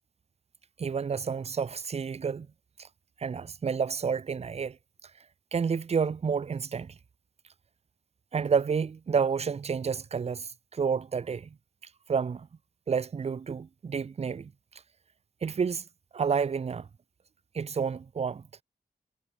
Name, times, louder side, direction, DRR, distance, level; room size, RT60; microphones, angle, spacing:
voice 1, 0.8-2.5 2.8-2.9 3.2-4.8 5.5-6.9 8.3-11.5 12.1-12.5 12.9-14.5 15.4-15.8 16.1-16.9 17.5-18.4, right 6 dB, 40° right, 0.5 m, -30 dB
wide cardioid pair, 120°, 17 cm